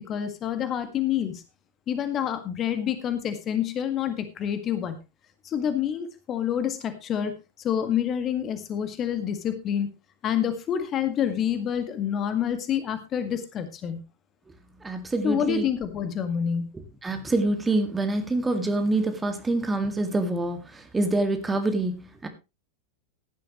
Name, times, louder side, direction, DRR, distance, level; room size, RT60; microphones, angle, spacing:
voice 1, 0.0-1.4 1.9-5.0 5.4-7.3 7.6-9.9 10.2-14.0 15.2-16.7, left 9 dB, 30° left, 9 dB, 1.8 m, -27 dB
voice 2, 14.8-15.7 17.0-22.3, right 2 dB, 10° right, 7 dB, 2.0 m, -26 dB
16.0 x 11.0 x 3.0 m, 0.27 s
figure-of-eight pair, 90°, 0 cm